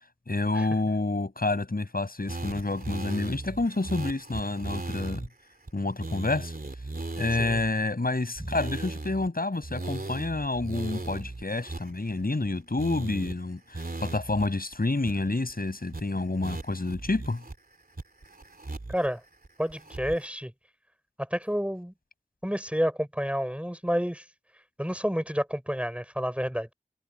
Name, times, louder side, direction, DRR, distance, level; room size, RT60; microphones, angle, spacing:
voice 1, 0.3-5.3 5.7-6.5 7.2-17.4, left 2 dB, 90° left, 7.4 m, -29 dB
sound 1, 2.3-5.3 5.7-5.8 6.0-7.7 8.4-9.3 9.6-12.5 12.8-13.3 13.7-14.5 14.7-14.8 15.0-15.5 15.9-16.0 16.4-17.5 18.0-19.1 19.4-20.3, right 2 dB, 85° right, 3.0 m, -37 dB
voice 2, 18.9-19.2 19.6-20.5 21.2-21.9 22.4-24.2 24.8-26.7, equal, 10° right, 5.5 m, -29 dB
wide cardioid pair, 45°, 15 cm